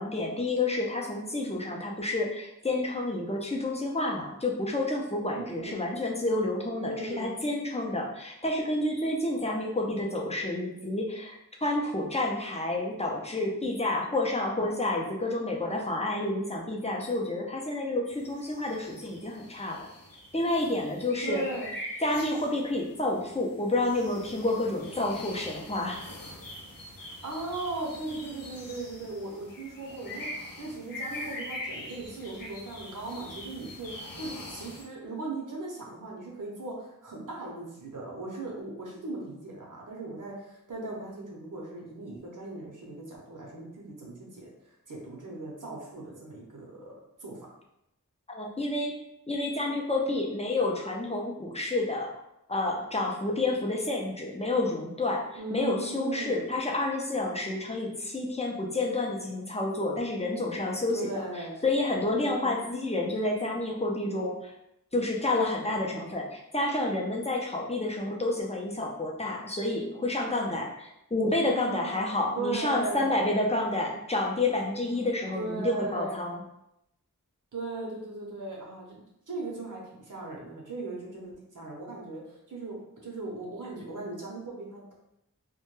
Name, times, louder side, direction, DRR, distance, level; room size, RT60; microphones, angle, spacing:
voice 1, 0.0-19.9 20.3-21.4 22.0-26.1 48.3-48.9 49.3-52.1 52.5-61.2 61.6-64.5 64.9-76.4, left 2 dB, 20° left, -1 dB, 0.5 m, -29 dB
voice 2, 5.3-5.9 6.7-7.4 21.2-21.7 27.2-46.9 47.2-47.4 55.4-56.5 60.9-61.6 62.1-62.6 71.3-71.9 72.4-73.1 75.3-76.2 77.5-84.8, right 2 dB, 65° right, -2 dB, 0.7 m, -38 dB
sound 1, 18.1-34.8, left 1 dB, 80° left, 0.5 m, -43 dB
2.1 x 2.1 x 3.0 m, 0.83 s
wide cardioid pair, 45°, 33 cm